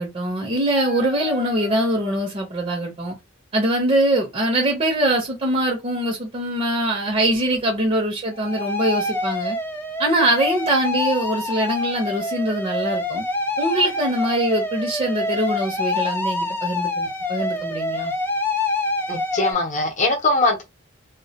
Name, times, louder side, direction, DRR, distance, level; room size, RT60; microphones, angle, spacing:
voice 1, 0.0-3.1 3.5-9.6 10.0-13.2 13.6-18.1, right 1 dB, 30° right, 0.6 m, -23 dB
sound 1, 0.7-2.2 8.3-19.5, left 2 dB, 10° left, 0.4 m, -26 dB
voice 2, 19.1-20.7, left 2 dB, 40° left, 0.7 m, -21 dB
2.2 x 2.1 x 2.7 m
head